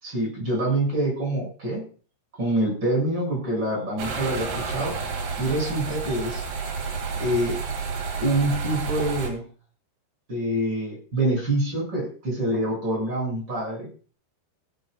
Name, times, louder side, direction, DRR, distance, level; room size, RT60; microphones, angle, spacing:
voice 1, 0.0-1.8 2.4-4.9 5.4-6.4 7.2-7.6 8.2-9.4 10.3-13.9, right 1 dB, 25° right, -1 dB, 8.1 m, -26 dB
sound 1, 4.0-9.3, right 5 dB, 75° right, 4.4 m, -30 dB
17.5 x 12.0 x 2.5 m, 0.39 s
omnidirectional pair, 4.6 m